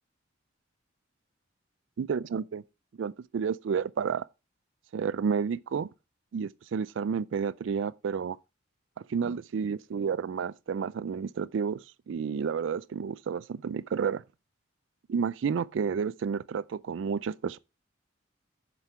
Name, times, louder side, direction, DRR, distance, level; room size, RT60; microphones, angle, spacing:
voice 1, 2.0-2.6 3.0-4.3 4.9-5.9 6.3-8.4 9.1-14.2 15.1-17.6, right 6 dB, 70° right, 0.4 m, -31 dB
7.4 x 6.9 x 4.8 m
head